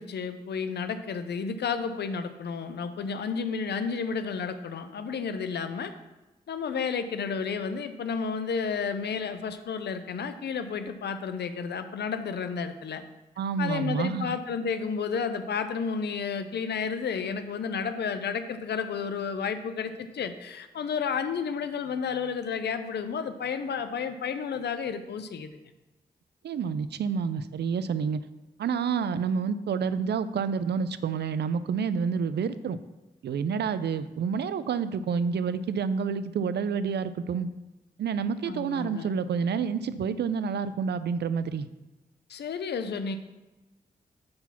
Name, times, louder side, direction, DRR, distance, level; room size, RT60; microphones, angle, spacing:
voice 1, 0.0-5.9 6.5-13.0 13.6-25.5 38.4-39.2 42.3-43.2, left 6 dB, 80° left, 9 dB, 0.6 m, -31 dB
voice 2, 13.4-14.4 26.4-28.2 28.6-32.8 33.2-37.5 38.0-41.7, right 6 dB, 80° right, 14 dB, 0.4 m, -29 dB
8.6 x 4.1 x 5.8 m, 1.1 s
supercardioid pair, 40°, 17 cm